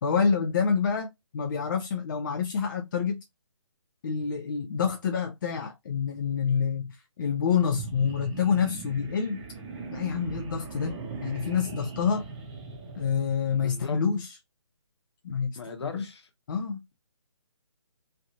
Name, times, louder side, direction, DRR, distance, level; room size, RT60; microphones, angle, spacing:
voice 1, 0.0-3.2 4.0-9.4 9.9-12.2 12.9-14.4 15.2-16.1 16.5-16.8, left 6 dB, 40° left, 0.5 m, -27 dB
sound 1, 7.7-13.9, right 4 dB, 15° right, 0.8 m, -40 dB
voice 2, 13.6-14.0 15.5-16.3, left 5 dB, 55° left, 1.0 m, -38 dB
3.2 x 2.7 x 2.5 m
figure-of-eight pair, 150°, 16 cm